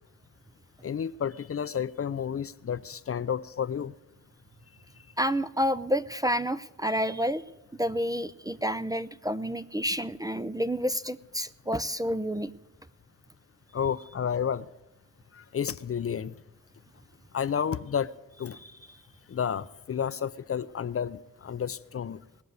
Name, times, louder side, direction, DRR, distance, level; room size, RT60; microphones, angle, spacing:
voice 1, 0.8-3.9 13.7-14.7 15.3-16.4 17.3-18.1 18.4-18.6 19.3-22.2, left 8 dB, 45° left, 0.6 m, -31 dB
voice 2, 5.2-7.4 7.8-12.5, equal, 10° right, 0.5 m, -29 dB
19.5 x 6.9 x 9.3 m
cardioid pair, 65°, 33 cm